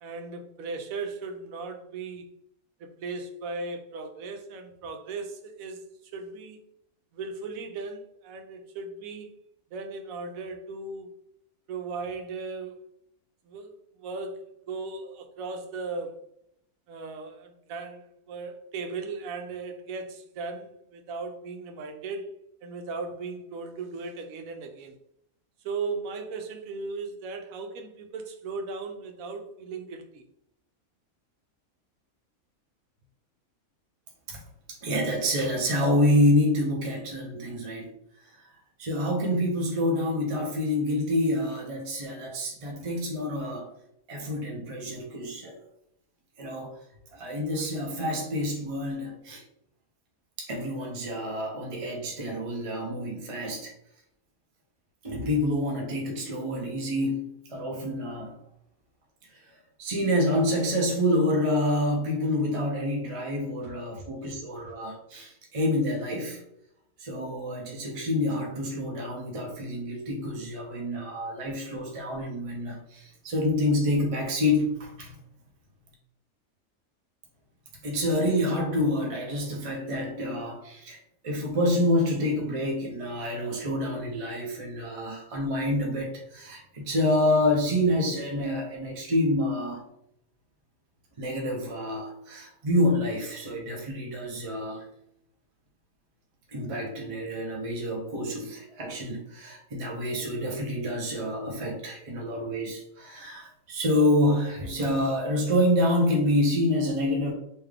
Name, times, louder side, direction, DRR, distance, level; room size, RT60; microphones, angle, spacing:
voice 1, 0.0-2.3 2.8-6.6 7.1-9.3 9.7-11.1 11.7-12.8 13.4-16.2 16.9-22.3 22.6-25.0 25.6-30.3 64.0-64.4, right 4 dB, 80° right, 6 dB, 1.0 m, -37 dB
voice 2, 34.7-37.9 38.8-43.7 44.1-45.6 46.4-46.8 47.1-49.4 50.4-53.7 55.0-58.3 59.8-66.4 67.0-75.1 77.8-81.0 81.2-89.8 91.2-94.8 96.5-107.3, left 1 dB, 40° right, -1 dB, 0.4 m, -27 dB
3.5 x 2.8 x 3.3 m, 0.75 s
omnidirectional pair, 1.5 m